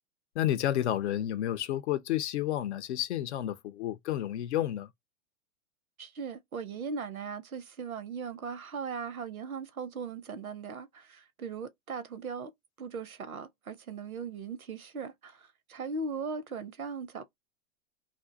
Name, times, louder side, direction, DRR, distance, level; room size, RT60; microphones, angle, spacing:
voice 1, 0.4-4.9, left 12 dB, 55° left, 0.6 m, -30 dB
voice 2, 6.0-12.5 12.8-17.2, right 5 dB, 85° right, 0.8 m, -38 dB
2.5 x 2.2 x 3.7 m
figure-of-eight pair, 100°, 41 cm